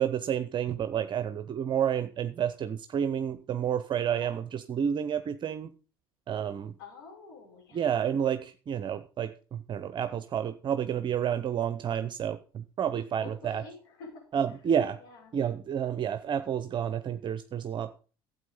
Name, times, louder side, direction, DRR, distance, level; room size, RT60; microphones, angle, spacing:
voice 1, 0.0-5.7 6.3-6.8 7.7-13.6 14.3-15.0 15.3-18.0, right 9 dB, 40° right, 12 dB, 0.7 m, -30 dB
voice 2, 6.8-8.1 13.2-14.2 15.0-15.3, left 4 dB, 75° left, 0 dB, 6.2 m, -48 dB
12.5 x 8.4 x 5.2 m, 0.37 s
hypercardioid pair, 65°, 13 cm